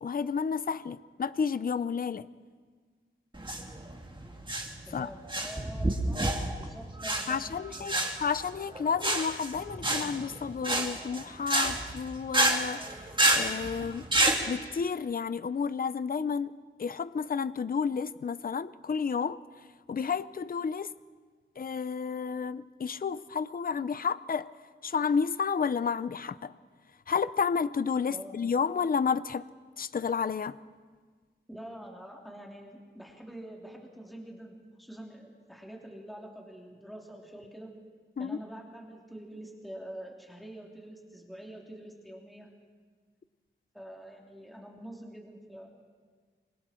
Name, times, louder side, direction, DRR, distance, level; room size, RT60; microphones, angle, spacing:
voice 1, 0.0-2.3 4.9-5.1 7.3-12.8 13.3-14.0 14.5-19.4 19.9-20.9 21.6-24.5 24.8-26.5 27.1-29.4 29.8-30.6 38.2-38.4, left 6 dB, 45° left, 0.5 m, -31 dB
sound 1, 3.3-14.4, right 1 dB, 25° right, 2.3 m, -29 dB
voice 2, 4.8-6.3 6.6-8.1 28.1-28.4 31.5-37.7 38.2-42.5 43.7-45.7, right 1 dB, ahead, 3.1 m, -46 dB
27.0 x 25.0 x 4.4 m
wide cardioid pair, 110°, 21 cm